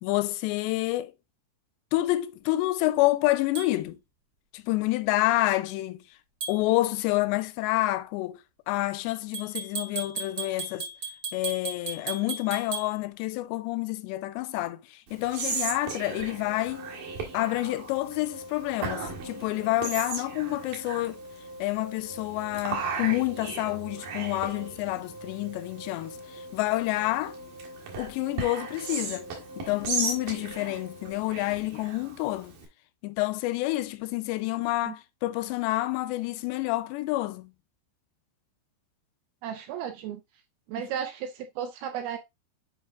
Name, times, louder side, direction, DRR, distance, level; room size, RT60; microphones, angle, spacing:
voice 1, 0.0-1.1 1.9-4.0 4.5-6.0 6.5-8.4 8.7-10.9 11.3-14.8 15.1-16.9 17.3-21.2 21.6-26.2 26.5-27.3 28.0-29.3 29.6-32.5 33.0-37.5 40.8-40.9, left 18 dB, 85° left, 2.7 m, -28 dB
sound 1, 3.5-3.7 6.4-6.6 9.3-12.9, right 5 dB, 40° right, 1.6 m, -35 dB
Whispering, 15.1-32.7, right 4 dB, 60° right, 3.0 m, -37 dB
sound 2, 15.5-31.1, equal, 45° left, 0.4 m, -46 dB
voice 2, 39.4-40.2 40.7-42.2, right 9 dB, 80° right, 2.3 m, -34 dB
8.0 x 2.8 x 4.8 m
omnidirectional pair, 5.0 m